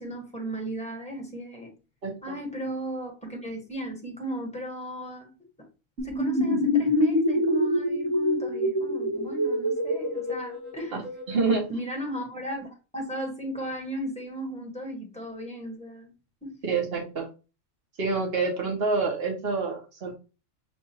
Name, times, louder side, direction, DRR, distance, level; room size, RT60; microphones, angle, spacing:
voice 1, 0.0-1.7 2.2-5.3 6.0-11.0 11.7-16.1 16.4-16.6, right 1 dB, 5° left, 1.3 m, -35 dB
voice 2, 2.0-2.4 11.3-11.7 16.6-17.3 18.0-20.2, right 4 dB, 50° right, 1.5 m, -27 dB
sound 1, 6.0-11.4, left 1 dB, 80° right, 1.8 m, -26 dB
6.9 x 2.6 x 2.8 m
omnidirectional pair, 1.3 m